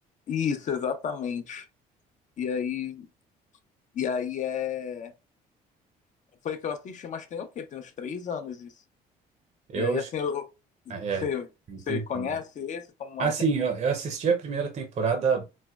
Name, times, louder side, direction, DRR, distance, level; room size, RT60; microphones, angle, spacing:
voice 1, 0.3-1.7 2.4-3.1 3.9-5.1 6.4-8.7 9.7-10.5 10.9-11.0 11.2-11.5 11.9-13.3, left 7 dB, 45° left, 0.7 m, -31 dB
voice 2, 9.7-10.1 10.9-11.3 11.7-12.3 13.2-15.4, right 5 dB, 40° right, 0.7 m, -27 dB
4.3 x 2.1 x 2.3 m
cardioid pair, 110°, 17 cm